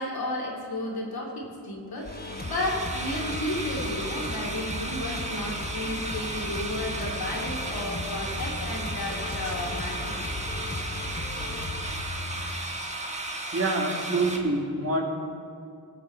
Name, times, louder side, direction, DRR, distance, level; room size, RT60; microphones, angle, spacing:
voice 1, 0.0-10.3 10.7-10.8, left 1 dB, 70° left, -3 dB, 2.7 m, -33 dB
sound 1, 2.0-14.4, right 2 dB, 15° right, 1.4 m, -35 dB
sound 2, 2.1-11.8, left 2 dB, 25° left, 1.1 m, -37 dB
sound 3, 4.6-12.5, equal, 85° right, 1.7 m, -44 dB
voice 2, 11.5-11.9 13.5-15.0, right 2 dB, 35° right, -1 dB, 2.1 m, -27 dB
18.0 x 6.8 x 4.5 m, 2.4 s
cardioid pair, 65°, 39 cm